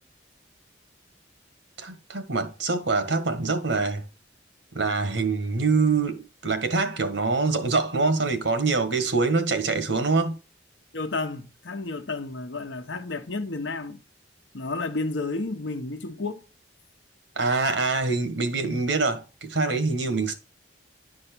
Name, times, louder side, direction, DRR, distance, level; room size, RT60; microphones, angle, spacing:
voice 1, 1.8-4.0 4.7-10.4 17.3-20.3, right 3 dB, 75° right, 1.5 m, -25 dB
voice 2, 10.9-14.0 14.5-16.4 20.1-20.2, left 3 dB, 75° left, 1.0 m, -31 dB
11.0 x 4.6 x 4.6 m
head